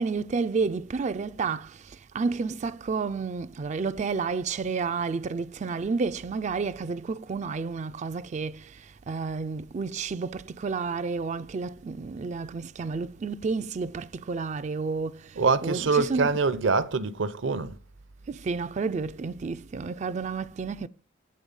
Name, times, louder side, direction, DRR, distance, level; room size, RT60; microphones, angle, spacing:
voice 1, 0.0-16.4 18.3-20.9, right 4 dB, 35° right, 0.3 m, -31 dB
voice 2, 15.4-17.8, right 4 dB, 65° right, 0.7 m, -24 dB
8.6 x 4.0 x 5.3 m
head